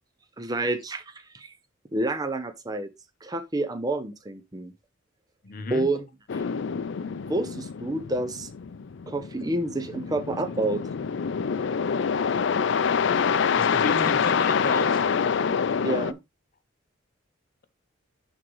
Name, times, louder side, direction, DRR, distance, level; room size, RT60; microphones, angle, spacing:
voice 1, 0.4-1.0 1.3-1.5 1.9-2.9 3.2-4.7 5.7-6.0 7.3-8.5 9.1-10.8 15.8-16.2, right 2 dB, 20° right, 0.6 m, -28 dB
voice 2, 5.4-5.9 13.6-15.0, left 3 dB, 45° left, 0.8 m, -31 dB
sound 1, 6.3-16.1, left 6 dB, 60° left, 0.4 m, -26 dB
11.0 x 3.7 x 3.1 m
head